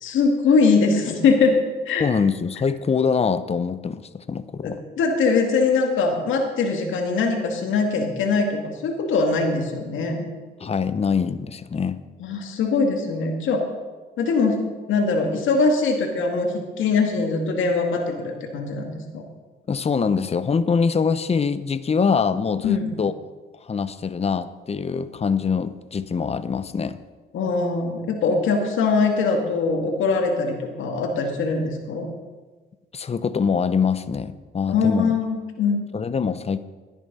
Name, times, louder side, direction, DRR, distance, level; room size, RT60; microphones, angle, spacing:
voice 1, 0.0-1.6 1.9-2.1 4.6-10.3 12.2-13.7 14.2-14.6 14.9-19.2 22.6-22.9 27.3-32.1 34.7-35.8, left 4 dB, 80° left, 2 dB, 2.3 m, -22 dB
voice 2, 2.0-4.8 10.6-12.0 19.7-23.1 23.7-27.0 32.9-35.1 35.9-36.6, left 5 dB, 30° left, 13 dB, 0.7 m, -24 dB
12.5 x 10.0 x 5.6 m, 1.3 s
cardioid pair, 90°, 20 cm